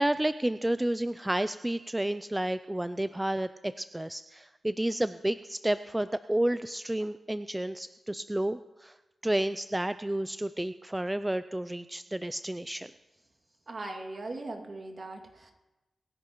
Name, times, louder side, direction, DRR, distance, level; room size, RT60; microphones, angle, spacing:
voice 1, 0.0-8.9 9.2-12.9, right 1 dB, 15° right, 12 dB, 0.4 m, -31 dB
voice 2, 13.7-15.5, right 2 dB, 50° right, 2 dB, 2.3 m, -39 dB
26.0 x 10.5 x 3.1 m, 1.1 s
cardioid pair, 60°, 0 cm